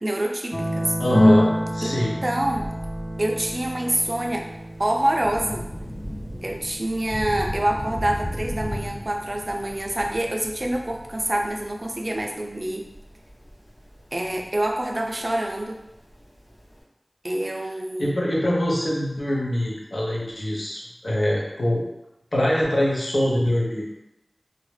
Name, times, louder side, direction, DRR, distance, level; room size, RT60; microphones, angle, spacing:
voice 1, 0.0-0.9 1.8-2.0 2.2-2.7 3.2-4.5 4.8-5.7 6.4-12.9 14.1-15.8 17.2-18.2, right 1 dB, 50° right, 1 dB, 0.4 m, -26 dB
sound 1, 0.5-8.7, equal, 30° left, 0.5 m, -27 dB
voice 2, 1.0-2.1 18.0-21.8 22.3-23.9, left 1 dB, 75° left, -4 dB, 0.6 m, -23 dB
Thunder / Rain, 4.4-16.8, equal, 55° left, 1.0 m, -37 dB
2.3 x 2.1 x 3.1 m, 0.88 s
wide cardioid pair, 45°, 0 cm